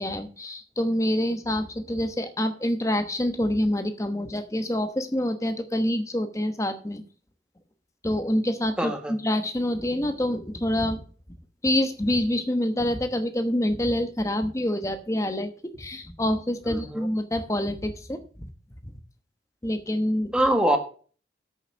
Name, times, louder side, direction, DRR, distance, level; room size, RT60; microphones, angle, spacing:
voice 1, 0.0-7.0 8.0-11.0 11.6-15.5 15.8-18.5 19.6-20.3, left 1 dB, 15° left, 8 dB, 1.0 m, -26 dB
voice 2, 8.8-9.1 16.7-17.1 20.3-20.8, right 1 dB, 5° right, 5 dB, 1.3 m, -23 dB
8.0 x 6.8 x 7.1 m, 0.41 s
head